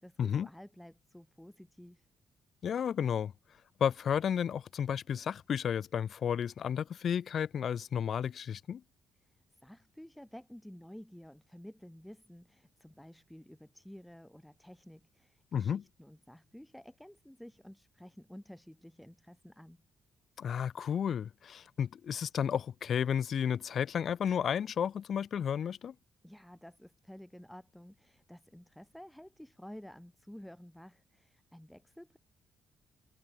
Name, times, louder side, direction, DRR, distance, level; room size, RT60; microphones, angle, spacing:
voice 1, 0.0-2.1 9.2-19.8 26.2-32.2, equal, 5° left, 2.5 m, -52 dB
voice 2, 2.6-3.3 3.8-8.8 15.5-15.8 20.4-25.9, left 8 dB, 55° left, 1.0 m, -32 dB
cardioid pair, 90°, 0 cm